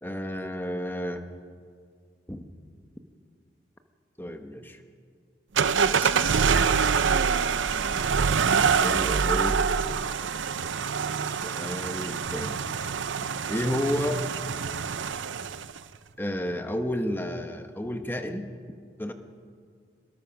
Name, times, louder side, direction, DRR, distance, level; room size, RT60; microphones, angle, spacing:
voice 1, 0.0-1.3 2.3-2.4 4.2-4.8 6.0-6.3 8.6-9.6 11.3-12.6 13.5-14.2 16.2-18.5 19.0-19.1, equal, 10° left, 6 dB, 1.1 m, -31 dB
sound 1, 5.6-15.8, right 6 dB, 85° right, 0.6 m, -25 dB
24.0 x 20.5 x 5.9 m, 2.1 s
head